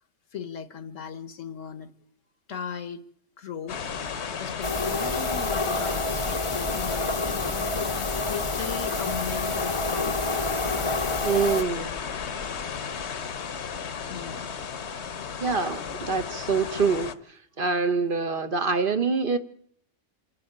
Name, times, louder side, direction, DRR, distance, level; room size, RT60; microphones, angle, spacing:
voice 1, 0.3-1.9 2.5-3.0 3.4-3.8 4.3-10.3 14.1-14.5, left 7 dB, 80° left, 1.6 m, -37 dB
sound 1, 3.7-17.2, left 6 dB, 65° left, 1.3 m, -34 dB
sound 2, 4.6-11.6, left 2 dB, 30° left, 0.8 m, -28 dB
voice 2, 11.2-11.9 15.4-17.1 17.6-19.4, right 4 dB, 45° right, 1.2 m, -25 dB
27.0 x 11.5 x 8.8 m
omnidirectional pair, 1.3 m